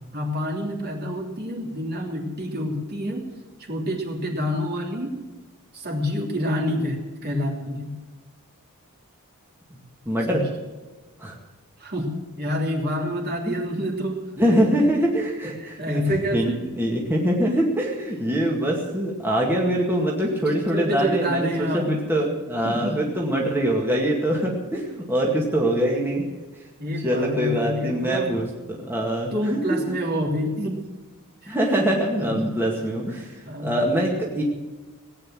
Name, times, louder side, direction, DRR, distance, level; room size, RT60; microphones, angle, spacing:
voice 1, 0.1-3.3 3.6-5.2 5.7-7.9 10.3-10.4 11.8-14.3 15.4-16.6 20.3-20.4 20.7-22.0 22.6-23.0 26.8-28.4 29.3-30.8 31.4-31.6 32.2-32.5 33.5-33.7, equal, 45° right, 0 dB, 3.2 m, -27 dB
voice 2, 10.1-10.4 11.2-11.4 13.5-13.6 14.4-16.0 16.3-26.2 27.0-29.6 31.5-34.4, right 1 dB, 10° right, -2 dB, 2.1 m, -23 dB
18.5 x 9.3 x 7.7 m, 1.2 s
head